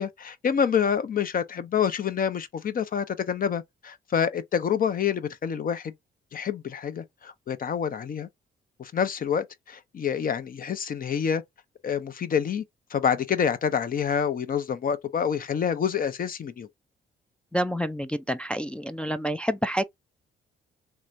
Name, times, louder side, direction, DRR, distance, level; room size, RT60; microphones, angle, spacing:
voice 1, 0.0-5.9 6.3-8.3 8.8-11.4 11.8-12.6 12.9-16.7, left 7 dB, 45° left, 0.7 m, -27 dB
voice 2, 17.5-19.8, equal, 5° left, 0.3 m, -28 dB
3.4 x 2.9 x 2.5 m
cardioid pair, 90°, 20 cm